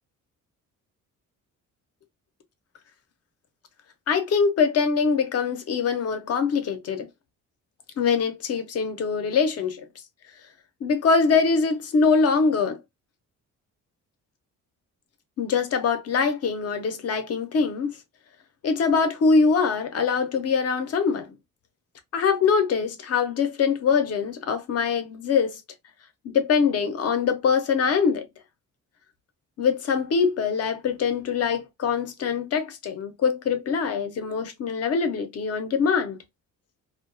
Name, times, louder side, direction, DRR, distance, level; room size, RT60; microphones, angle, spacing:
voice 1, 4.1-7.1 8.0-9.9 10.8-12.8 15.4-18.0 18.6-21.4 22.1-25.6 26.2-28.3 29.6-36.2, left 5 dB, 50° left, 0.6 m, -23 dB
2.3 x 2.2 x 2.4 m
cardioid pair, 145°, 32 cm